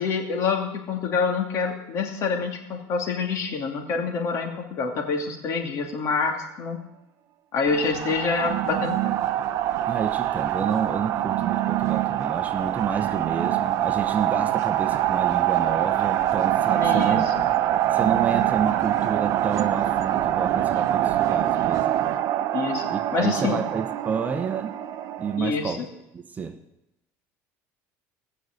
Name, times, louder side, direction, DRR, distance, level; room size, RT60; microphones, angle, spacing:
voice 1, 0.0-6.8 7.5-9.1 16.8-17.5 22.5-23.6 25.4-25.8, left 5 dB, 50° left, 3 dB, 2.6 m, -27 dB
sound 1, 7.7-25.4, right 12 dB, 60° right, 0.7 m, -24 dB
voice 2, 9.9-17.3 17.9-22.0 22.9-24.7 25.2-25.8 26.1-26.6, right 6 dB, 25° right, 8 dB, 1.0 m, -29 dB
17.5 x 6.5 x 7.9 m, 0.87 s
cardioid pair, 130°, 6 cm